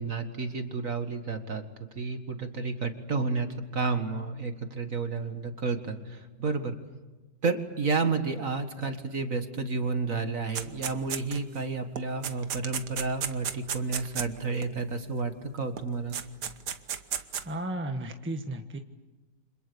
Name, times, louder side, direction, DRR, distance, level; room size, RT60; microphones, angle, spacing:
voice 1, 0.0-6.8 7.4-16.2, right 4 dB, 45° right, 7 dB, 2.1 m, -31 dB
sound 1, 10.5-11.6 12.0-14.7 15.8-15.9 16.1-17.5, right 8 dB, 65° right, 1.6 m, -34 dB
voice 2, 17.4-18.8, right 1 dB, 5° right, 5 dB, 1.2 m, -34 dB
29.5 x 26.5 x 7.0 m, 1.2 s
omnidirectional pair, 2.0 m